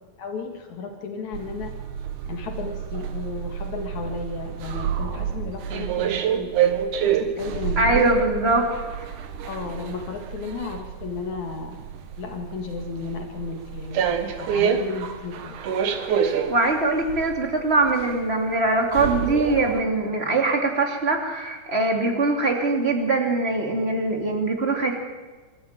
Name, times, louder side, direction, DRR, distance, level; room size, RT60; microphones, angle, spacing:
voice 1, 0.2-1.7 2.3-6.6 7.0-8.2 9.4-11.8 12.2-15.6, left 5 dB, 70° left, 3 dB, 3.2 m, -34 dB
sound 1, 1.3-19.8, right 8 dB, 90° right, 2.9 m, -28 dB
voice 2, 7.8-8.7 9.0-9.1 16.1-25.0, right 2 dB, 20° right, 2 dB, 2.9 m, -22 dB
26.5 x 13.5 x 9.1 m, 1.3 s
omnidirectional pair, 3.5 m